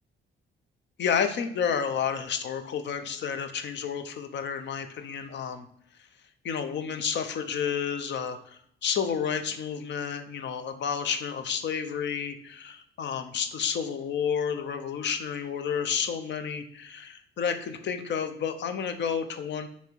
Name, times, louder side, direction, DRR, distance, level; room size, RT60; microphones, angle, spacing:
voice 1, 1.0-5.7 6.4-19.7, left 7 dB, 65° left, 8 dB, 0.8 m, -30 dB
6.7 x 3.1 x 4.6 m, 0.68 s
cardioid pair, 90°, 20 cm